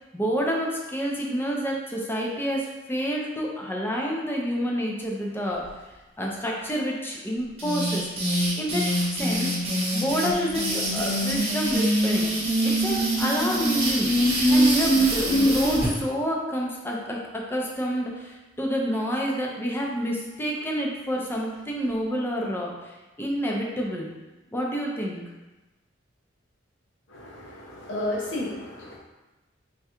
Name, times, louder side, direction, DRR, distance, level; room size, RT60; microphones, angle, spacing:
voice 1, 0.1-5.6 6.2-8.8 9.1-9.5 9.9-12.3 12.6-22.7 23.2-24.1 24.5-25.2, equal, 10° left, -2 dB, 0.6 m, -28 dB
sound 1, 7.6-15.9, right 1 dB, 35° right, 1.0 m, -23 dB
voice 2, 27.1-29.0, left 1 dB, 80° left, -3 dB, 0.9 m, -32 dB
3.5 x 2.3 x 4.3 m, 1.1 s
head